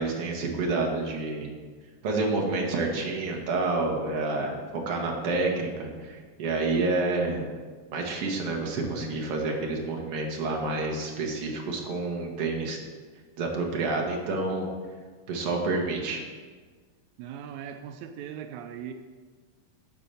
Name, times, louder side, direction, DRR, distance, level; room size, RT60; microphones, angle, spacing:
voice 1, 0.0-1.5 2.0-7.4 7.9-12.8 13.4-14.7 15.3-16.2, right 3 dB, 50° right, 0 dB, 2.2 m, -29 dB
voice 2, 17.2-18.9, right 9 dB, 90° right, 7 dB, 1.6 m, -39 dB
12.0 x 4.9 x 7.0 m, 1.4 s
omnidirectional pair, 4.0 m